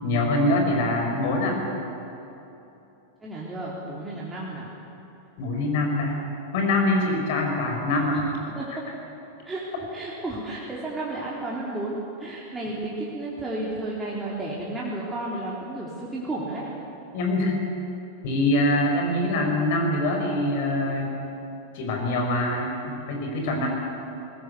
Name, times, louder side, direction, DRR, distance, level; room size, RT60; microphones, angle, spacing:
voice 1, 0.0-1.6 5.4-6.2 6.5-8.2 17.1-17.5 18.2-21.1 21.7-23.7, left 1 dB, 50° left, 1 dB, 5.0 m, -24 dB
voice 2, 3.2-4.7 8.6-8.7 9.5-9.6 9.9-12.0 12.2-16.7 23.4-23.7, right 2 dB, 10° right, -6 dB, 3.6 m, -32 dB
21.0 x 20.5 x 8.4 m, 2.9 s
figure-of-eight pair, 90°, 0 cm